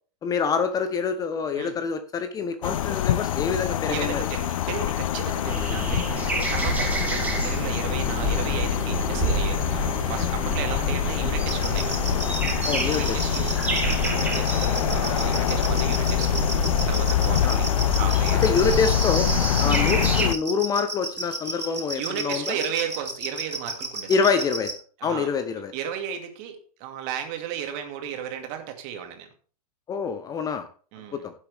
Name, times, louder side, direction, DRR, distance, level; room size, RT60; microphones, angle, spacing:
voice 1, 0.2-4.2 12.6-13.2 14.5-14.6 17.4-17.6 18.4-19.3 19.6-22.6 24.1-24.8 25.0-25.7 29.9-30.7 31.1-31.3, left 5 dB, 20° left, 10 dB, 0.7 m, -26 dB
sound 1, 2.6-20.3, left 12 dB, 55° left, 0.6 m, -26 dB
voice 2, 3.8-12.0 12.3-13.6 14.0-16.5 16.9-18.6 19.6-19.8 21.9-24.3 25.0-25.3 25.7-29.3 30.9-31.3, right 9 dB, 35° right, 5 dB, 2.4 m, -34 dB
sound 2, 5.5-20.3, right 1 dB, 5° right, 2.3 m, -28 dB
sound 3, 11.5-24.7, right 2 dB, 90° right, 2.6 m, -32 dB
15.5 x 7.2 x 3.4 m, 0.41 s
figure-of-eight pair, 105°, 21 cm